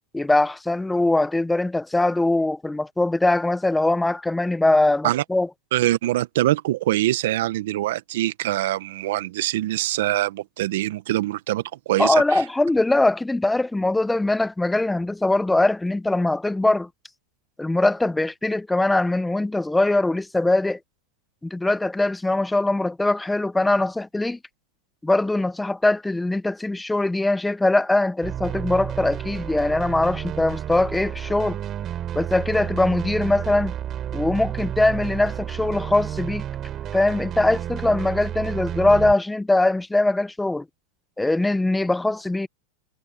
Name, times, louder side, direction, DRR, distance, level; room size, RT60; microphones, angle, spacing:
voice 1, 0.1-5.5 12.0-16.9 17.6-20.8 21.5-24.4 25.0-31.6 32.1-33.7 34.1-36.4 36.9-40.6 41.2-42.5, left 2 dB, 5° left, 0.6 m, -21 dB
voice 2, 5.7-12.4, right 15 dB, 70° right, 1.1 m, -24 dB
sound 1, 28.2-39.1, right 10 dB, 30° right, 3.8 m, -31 dB
supercardioid pair, 135°, 0 cm